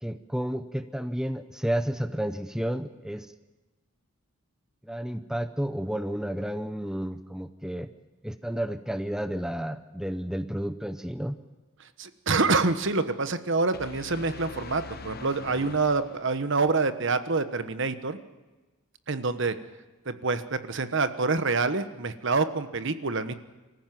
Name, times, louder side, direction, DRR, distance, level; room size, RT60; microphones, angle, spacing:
voice 1, 0.0-3.3 4.8-7.9 8.2-11.4, equal, 5° right, 10 dB, 0.6 m, -31 dB
voice 2, 12.0-18.2 19.1-19.5 20.0-23.3, right 3 dB, 60° right, 11 dB, 1.2 m, -26 dB
sound 1, 13.7-16.7, left 4 dB, 45° left, 1.1 m, -42 dB
24.5 x 14.5 x 9.3 m, 1.2 s
head